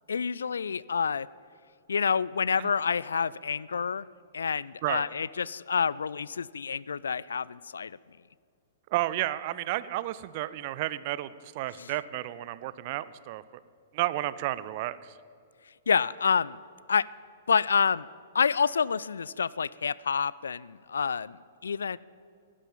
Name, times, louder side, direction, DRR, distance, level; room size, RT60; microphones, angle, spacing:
voice 1, 0.1-1.3 1.9-4.1 4.3-8.0 11.8-11.9 15.9-16.6 16.9-17.1 17.5-18.1 18.3-21.4 21.6-22.0, left 6 dB, 65° left, 21 dB, 0.3 m, -28 dB
voice 2, 8.9-13.4 13.9-15.1, right 15 dB, 40° right, 17 dB, 0.5 m, -32 dB
14.5 x 11.5 x 7.2 m, 2.3 s
figure-of-eight pair, 110°, 0 cm